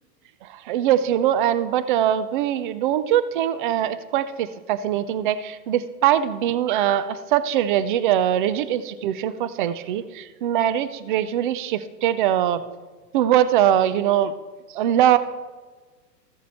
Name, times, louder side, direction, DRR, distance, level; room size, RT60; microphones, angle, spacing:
voice 1, 0.4-12.6 13.1-14.3 14.7-15.2, right 11 dB, 35° right, 15 dB, 0.4 m, -22 dB
14.0 x 7.3 x 4.2 m, 1.4 s
hypercardioid pair, 120°, 49 cm